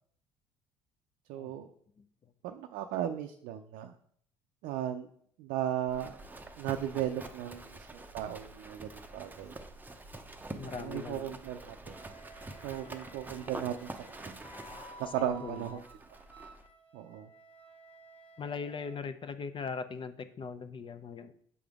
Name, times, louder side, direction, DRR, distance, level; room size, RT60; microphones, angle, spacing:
voice 1, 1.3-1.7 2.4-3.9 4.6-5.1 5.4-6.1 6.6-9.6 10.5-11.9 12.6-14.4 15.0-15.8 16.9-17.3, right 11 dB, 65° right, 5 dB, 0.5 m, -36 dB
voice 2, 2.0-2.3 7.7-7.8 10.6-11.3 15.2-15.8 18.4-21.4, left 5 dB, 30° left, 11 dB, 0.6 m, -40 dB
Livestock farm animals working animals, 5.9-16.7, right 2 dB, 10° right, 0.7 m, -47 dB
Wind instrument woodwind instrument, 11.9-19.0, right 1 dB, 10° left, 1.1 m, -54 dB
6.9 x 5.0 x 3.5 m, 0.63 s
hypercardioid pair, 65°, 16 cm